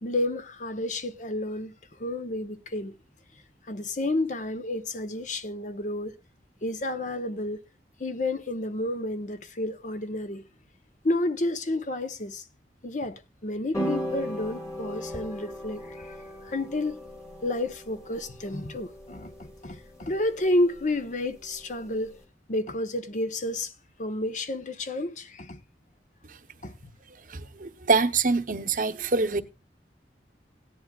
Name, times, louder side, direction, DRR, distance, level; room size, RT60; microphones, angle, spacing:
voice 1, 0.0-1.7 2.0-3.0 3.7-6.2 6.6-7.6 8.0-10.5 11.0-12.4 12.8-16.2 16.4-17.0 17.4-22.2 22.5-23.7 24.0-25.6 26.6-26.7, left 1 dB, 45° left, 0.8 m, -30 dB
sound 1, 13.7-22.2, equal, 20° left, 2.2 m, -38 dB
voice 2, 27.3-29.4, right 4 dB, 50° right, 0.8 m, -25 dB
17.0 x 10.5 x 2.4 m
head